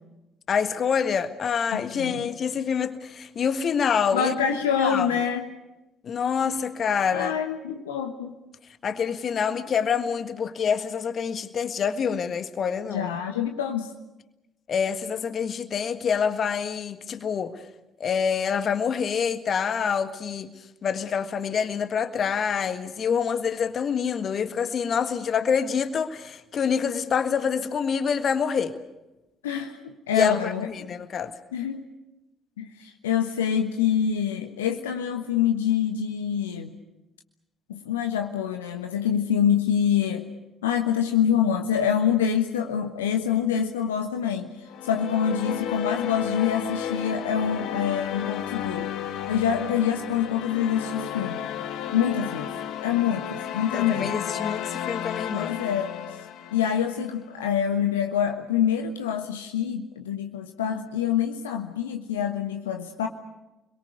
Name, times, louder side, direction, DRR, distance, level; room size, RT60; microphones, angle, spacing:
voice 1, 0.5-4.3 4.8-5.1 6.0-7.3 8.8-13.2 14.7-17.5 18.0-20.5 20.8-28.7 30.1-31.3 53.7-55.6, left 6 dB, 45° left, 10 dB, 1.6 m, -26 dB
voice 2, 1.7-2.3 4.1-5.4 7.1-8.3 12.9-13.9 29.4-31.0 31.5-31.8 32.6-36.8 37.7-40.3 40.6-44.5 44.8-48.9 49.3-51.4 51.9-52.5 52.8-54.2 55.3-55.9 56.5-63.1, left 8 dB, 80° left, 5 dB, 1.2 m, -26 dB
sound 1, 44.7-57.1, left 9 dB, 60° left, 1.7 m, -33 dB
30.0 x 22.0 x 6.8 m, 0.96 s
figure-of-eight pair, 45°, 0 cm